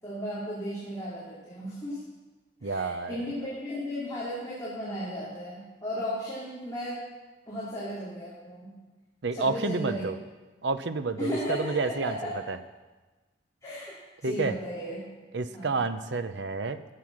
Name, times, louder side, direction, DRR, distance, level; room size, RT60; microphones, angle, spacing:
voice 1, 0.0-2.0 2.6-7.0 7.5-8.7 9.3-10.0 11.2-12.4 13.6-15.0 15.5-15.8, equal, 20° left, -9 dB, 3.4 m, -35 dB
voice 2, 2.6-3.2 9.2-10.2 10.6-12.2 12.5-12.6 14.2-14.5 15.3-16.8, right 3 dB, 65° right, 10 dB, 0.7 m, -29 dB
15.5 x 7.8 x 6.3 m, 1.2 s
head